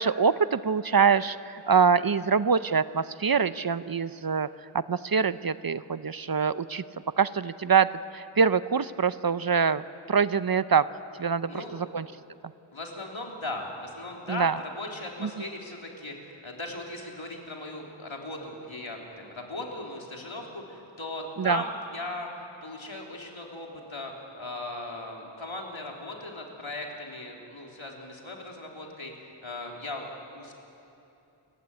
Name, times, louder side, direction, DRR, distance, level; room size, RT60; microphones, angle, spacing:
voice 1, 0.0-4.5 4.7-6.8 7.2-7.9 8.1-10.9 11.2-12.1 14.3-14.6 15.2-15.3 21.4-21.6, right 6 dB, 50° right, 15 dB, 0.6 m, -24 dB
voice 2, 11.5-11.8 12.7-30.5, left 2 dB, 80° left, 0 dB, 3.6 m, -38 dB
29.0 x 16.0 x 9.7 m, 2.8 s
wide cardioid pair, 55°, 47 cm